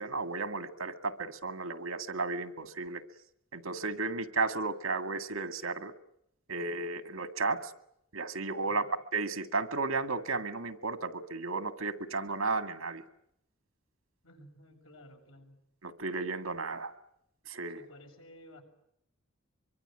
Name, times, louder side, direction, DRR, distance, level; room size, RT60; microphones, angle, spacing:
voice 1, 0.0-3.0 3.5-5.9 6.5-7.7 8.1-8.8 9.1-13.0 15.8-16.9 17.5-17.8, right 3 dB, 75° right, 9 dB, 2.0 m, -34 dB
voice 2, 8.6-9.0 14.2-15.6 17.7-18.6, equal, 80° left, 3 dB, 7.1 m, -54 dB
24.5 x 24.5 x 9.0 m, 0.76 s
head